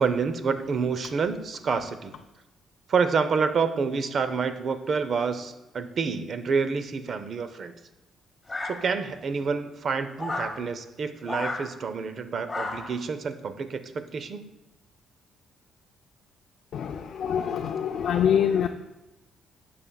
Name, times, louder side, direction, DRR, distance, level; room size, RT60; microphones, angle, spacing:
voice 1, 0.0-2.1 2.9-7.7 8.6-14.5, right 5 dB, 50° right, 10 dB, 0.6 m, -28 dB
sound 1, 8.5-9.2 10.2-10.6 11.2-11.7 12.5-13.0, left 2 dB, 20° left, 1.1 m, -33 dB
voice 2, 16.7-18.7, left 8 dB, 65° left, 4 dB, 0.4 m, -25 dB
11.0 x 6.7 x 2.3 m, 1.0 s
cardioid pair, 90°, 0 cm